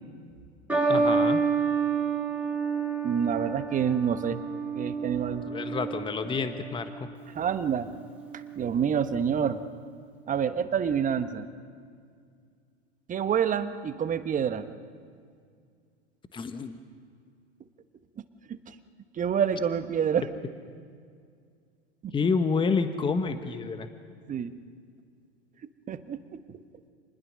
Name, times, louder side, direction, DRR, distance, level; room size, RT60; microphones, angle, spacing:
sound 1, 0.7-7.2 8.1-8.5, right 5 dB, 5° right, 6.6 m, -29 dB
voice 1, 0.9-1.4 5.5-6.9 16.3-16.8 22.1-23.9, left 4 dB, 15° left, 9 dB, 1.2 m, -28 dB
voice 2, 3.0-4.4 4.7-5.5 7.3-7.9 8.6-9.6 10.3-11.5 13.1-14.6 18.5-18.7 19.2-20.3 22.0-22.1 24.3-24.5 25.9-26.6, right 8 dB, 25° right, 11 dB, 1.2 m, -27 dB
28.0 x 20.5 x 6.4 m, 2.2 s
hypercardioid pair, 95°, 34 cm